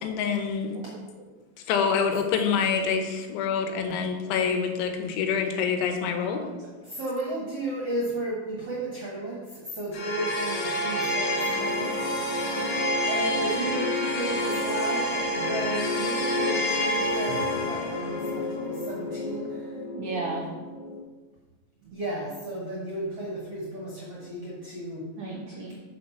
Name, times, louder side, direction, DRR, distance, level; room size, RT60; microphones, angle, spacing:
voice 1, 0.0-0.8 1.7-6.4, left 6 dB, 85° left, 5 dB, 3.3 m, -26 dB
voice 2, 0.7-1.2 4.5-4.6 6.1-6.7 19.9-20.4 25.2-25.8, right 3 dB, 80° right, -3 dB, 1.7 m, -37 dB
voice 3, 6.8-12.1 13.1-19.7 21.9-25.1, right 1 dB, 60° right, -5 dB, 1.6 m, -33 dB
sound 1, 9.9-21.0, left 1 dB, 70° left, 2.1 m, -28 dB
6.6 x 6.4 x 5.5 m, 1.3 s
omnidirectional pair, 5.2 m